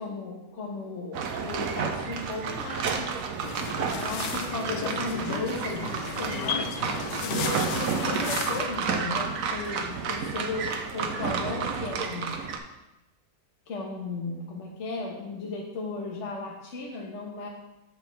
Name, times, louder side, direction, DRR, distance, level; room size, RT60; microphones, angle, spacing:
voice 1, 0.0-3.1 3.9-6.7 7.2-12.3 13.7-17.5, left 3 dB, 50° left, -2 dB, 1.2 m, -35 dB
sound 1, 1.1-12.6, right 6 dB, 65° right, 1.0 m, -31 dB
sound 2, 3.4-8.6, left 6 dB, 85° left, 1.3 m, -34 dB
7.7 x 7.4 x 3.2 m, 0.96 s
omnidirectional pair, 1.8 m